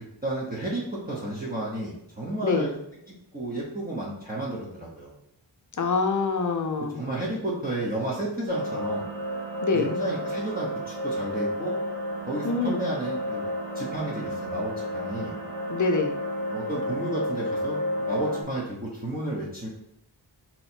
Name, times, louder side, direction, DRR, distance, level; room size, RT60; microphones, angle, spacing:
voice 1, 0.2-2.7 3.3-5.1 6.9-9.1 9.7-11.8 12.3-15.3 16.5-17.8 18.1-19.7, right 1 dB, 20° right, -6 dB, 0.8 m, -32 dB
voice 2, 5.8-7.0 9.6-9.9 12.4-12.9 15.7-16.2, left 4 dB, 40° left, 5 dB, 0.6 m, -25 dB
sound 1, 8.5-18.4, left 1 dB, 60° right, 1.4 m, -31 dB
3.0 x 2.9 x 4.3 m, 0.80 s
wide cardioid pair, 85°, 48 cm